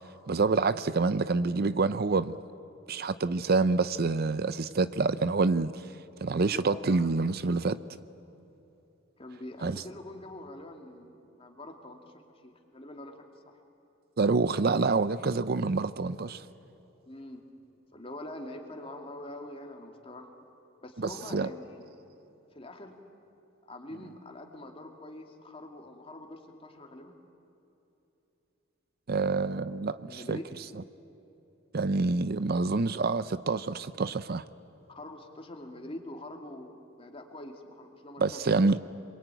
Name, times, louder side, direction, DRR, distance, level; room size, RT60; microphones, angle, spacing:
voice 1, 0.3-2.4 2.9-5.8 6.2-7.8 9.6-9.8 14.2-16.4 21.0-21.5 29.1-30.4 31.7-34.4 38.2-38.8, right 3 dB, 50° right, 14 dB, 0.6 m, -27 dB
voice 2, 6.3-7.1 9.2-13.2 13.5-13.6 17.1-17.4 17.9-20.3 20.8-21.9 22.5-23.0 23.7-27.2 30.0-30.5 32.7-32.8 34.9-38.4 38.7-38.8, left 1 dB, 30° left, 3 dB, 2.6 m, -44 dB
27.5 x 22.5 x 9.2 m, 3.0 s
head